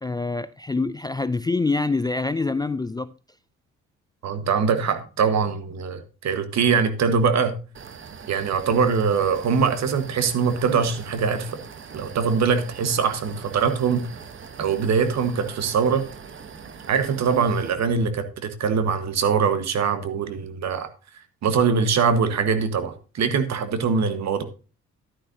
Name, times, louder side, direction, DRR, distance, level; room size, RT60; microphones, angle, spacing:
voice 1, 0.0-3.1, left 3 dB, 15° left, 0.3 m, -25 dB
voice 2, 4.2-7.6 8.3-11.6 11.9-14.1 14.6-16.1 16.9-20.9 21.4-24.4, right 6 dB, 65° right, 1.4 m, -22 dB
sound 1, 7.7-17.7, right 6 dB, 40° right, 1.0 m, -42 dB
11.0 x 9.9 x 2.7 m
cardioid pair, 90°, 30 cm